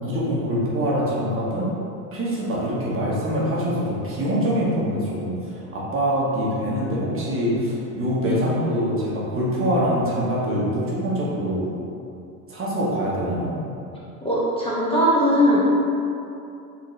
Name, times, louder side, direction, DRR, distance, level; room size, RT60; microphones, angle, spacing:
voice 1, 0.0-1.7 2.1-11.7 12.5-13.5, equal, 25° right, -6 dB, 1.0 m, -24 dB
voice 2, 8.2-8.6 14.2-15.6, equal, 10° left, -8 dB, 0.9 m, -20 dB
4.2 x 3.6 x 3.2 m, 2.7 s
hypercardioid pair, 95°, 48 cm